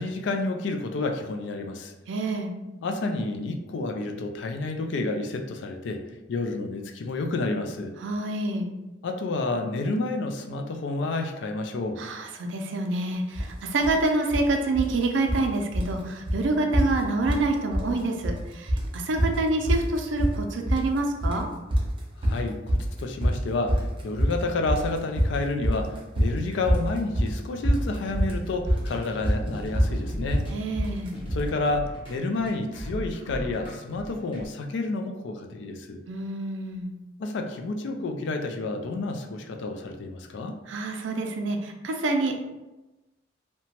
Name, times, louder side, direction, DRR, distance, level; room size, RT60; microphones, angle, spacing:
voice 1, 0.0-1.9 2.8-6.0 6.3-7.9 9.0-12.0 22.2-30.5 31.3-36.0 37.2-40.6, left 2 dB, 65° left, 4 dB, 0.3 m, -30 dB
voice 2, 2.1-2.5 8.0-8.6 12.0-21.5 30.5-31.1 36.1-36.9 40.7-42.4, right 2 dB, 70° right, 3 dB, 0.4 m, -27 dB
sound 1, 13.3-13.5 13.8-14.5 14.7-15.5 15.7-16.0 16.3-16.4 16.7-17.5 17.7-18.4 18.7-31.5, equal, 25° right, 0.6 m, -25 dB
sound 2, 28.1-34.5, equal, 30° left, 0.7 m, -38 dB
2.8 x 2.2 x 2.8 m, 1.0 s
head